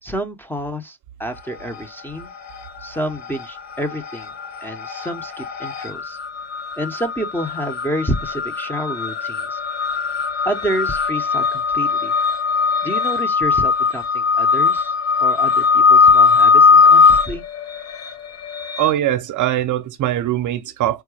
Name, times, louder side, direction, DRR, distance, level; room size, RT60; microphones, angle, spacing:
voice 1, 0.0-2.3 2.8-4.3 4.6-6.2 6.8-9.6 9.9-12.1 12.8-14.9 15.2-17.4, right 1 dB, 5° left, 0.6 m, -29 dB
sound 1, 1.4-2.0 2.3-18.9, left 5 dB, 40° left, 1.2 m, -19 dB
voice 2, 18.8-21.0, right 13 dB, 45° right, 0.7 m, -21 dB
4.7 x 2.2 x 4.7 m
cardioid pair, 125°, 41 cm